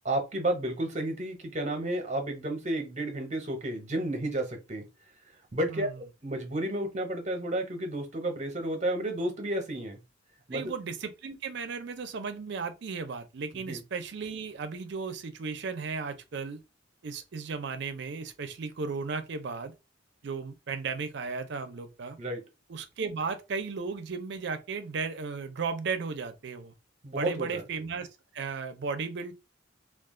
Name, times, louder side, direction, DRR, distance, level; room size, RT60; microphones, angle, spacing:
voice 1, 0.0-4.8 5.5-10.0 10.5-10.7 13.7-13.8 22.2-22.4 27.0-27.6, right 1 dB, 40° right, 0.8 m, -32 dB
voice 2, 10.5-16.6 17.0-19.7 20.2-22.2 22.7-26.7 27.1-28.1 28.3-29.3, right 5 dB, 60° right, 0.5 m, -35 dB
2.4 x 2.3 x 3.6 m
head